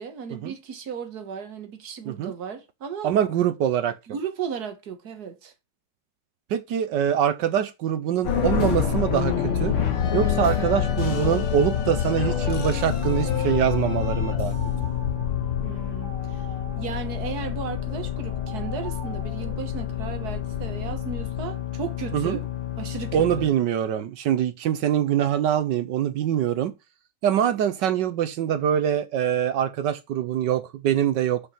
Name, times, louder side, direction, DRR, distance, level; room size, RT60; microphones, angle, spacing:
voice 1, 0.0-3.1 4.1-5.5 15.6-16.5 16.8-22.5 22.8-23.5, right 7 dB, 50° right, 1.7 m, -35 dB
voice 2, 3.0-3.9 6.5-9.7 10.1-14.5 22.1-22.4 23.1-26.7 27.2-31.4, right 10 dB, 70° right, 1.2 m, -24 dB
sound 1, 8.2-23.5, left 9 dB, 90° left, 2.4 m, -27 dB
sound 2, 10.9-19.6, right 4 dB, 45° left, 3.5 m, -44 dB
6.2 x 5.7 x 5.5 m
omnidirectional pair, 2.3 m